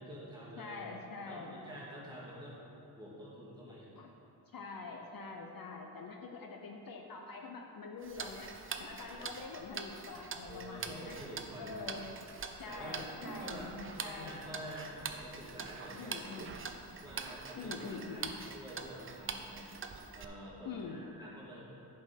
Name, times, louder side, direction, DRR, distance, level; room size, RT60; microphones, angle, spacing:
voice 1, 0.0-0.8 1.2-2.6 3.0-4.0 8.1-8.4 9.1-9.3 10.5-12.1 12.7-13.0 13.4-13.7 14.0-16.2 17.0-19.6 20.1-21.6, equal, 10° right, -7 dB, 1.9 m, -48 dB
voice 2, 0.6-1.6 4.0-4.1 4.5-8.5 8.8-11.2 11.6-12.1 12.6-14.3 16.0-16.5 17.5-18.3 20.6-21.0, left 4 dB, 60° left, 2 dB, 0.7 m, -45 dB
Tick-tock, 8.0-20.2, right 5 dB, 35° right, 0.4 m, -44 dB
10.5 x 4.4 x 5.2 m, 2.9 s
wide cardioid pair, 155°, 40 cm